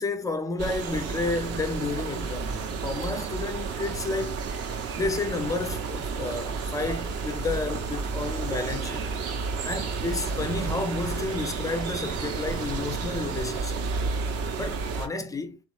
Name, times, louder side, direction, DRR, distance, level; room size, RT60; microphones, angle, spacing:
voice 1, 0.0-4.5 5.0-9.1 9.6-13.8 14.6-15.6, left 3 dB, 10° left, 0.4 m, -31 dB
sound 1, 0.6-15.1, right 4 dB, 35° right, 0.7 m, -31 dB
sound 2, 8.6-14.1, right 5 dB, 65° right, 1.0 m, -46 dB
3.5 x 3.3 x 3.1 m
figure-of-eight pair, 65°, 43 cm